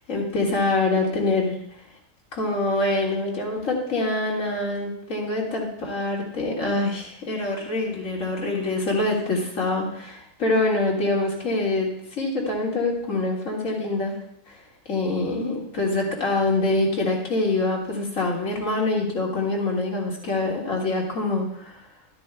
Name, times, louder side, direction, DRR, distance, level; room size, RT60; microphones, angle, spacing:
voice 1, 0.1-1.6 2.3-14.2 14.5-14.6 14.9-21.8, left 2 dB, 70° left, -2 dB, 2.5 m, -25 dB
12.5 x 12.5 x 2.2 m, 0.70 s
omnidirectional pair, 1.4 m